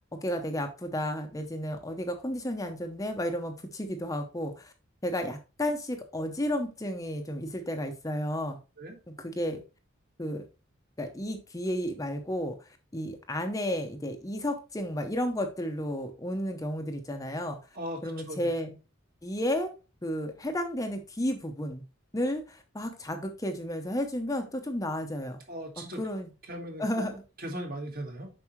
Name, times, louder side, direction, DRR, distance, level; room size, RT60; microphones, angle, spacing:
voice 1, 0.1-4.7 5.0-8.6 9.1-9.6 10.2-10.5 11.0-12.6 12.9-17.6 18.0-18.8 19.2-19.7 20.0-21.8 22.1-25.4 25.8-26.3 26.8-27.2, equal, 15° left, 5 dB, 0.7 m, -32 dB
voice 2, 25.5-26.0 26.5-26.8 27.4-28.3, right 1 dB, 45° right, 3 dB, 1.6 m, -37 dB
7.2 x 5.3 x 3.1 m, 0.31 s
head